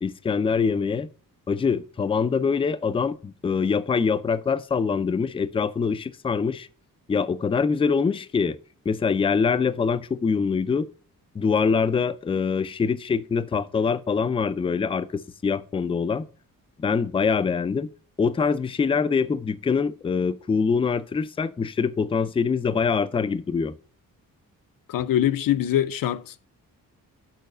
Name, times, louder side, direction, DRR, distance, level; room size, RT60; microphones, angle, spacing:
voice 1, 0.0-1.1 1.5-6.7 7.1-8.6 8.9-10.9 11.3-16.3 16.8-17.9 18.2-23.7, left 5 dB, 15° left, 0.3 m, -24 dB
voice 2, 24.9-26.4, left 11 dB, 75° left, 0.6 m, -23 dB
6.6 x 5.7 x 6.6 m
wide cardioid pair, 135°, 34 cm